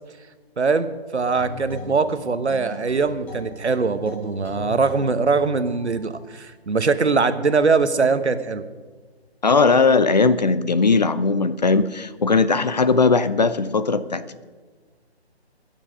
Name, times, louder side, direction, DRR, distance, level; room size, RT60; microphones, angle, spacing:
voice 1, 0.6-8.6, right 4 dB, 85° right, 11 dB, 1.2 m, -22 dB
sound 1, 1.4-6.3, equal, 5° left, 1.1 m, -37 dB
voice 2, 9.4-14.4, left 4 dB, 40° left, 14 dB, 0.5 m, -19 dB
21.0 x 7.4 x 5.1 m, 1.4 s
figure-of-eight pair, 155°, 33 cm